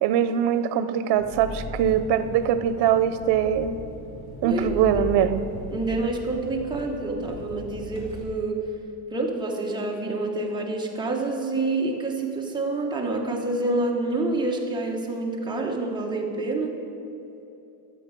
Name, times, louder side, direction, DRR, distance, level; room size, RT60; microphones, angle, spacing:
voice 1, 0.0-3.7 4.4-5.5, right 9 dB, 85° right, 11 dB, 0.7 m, -22 dB
Engine, 1.1-8.2, left 2 dB, 65° left, 3.0 m, -38 dB
voice 2, 4.4-5.0 5.7-8.7 9.1-16.7, right 2 dB, 10° right, -1 dB, 1.2 m, -27 dB
13.0 x 7.7 x 6.8 m, 2.9 s
cardioid pair, 165°, 41 cm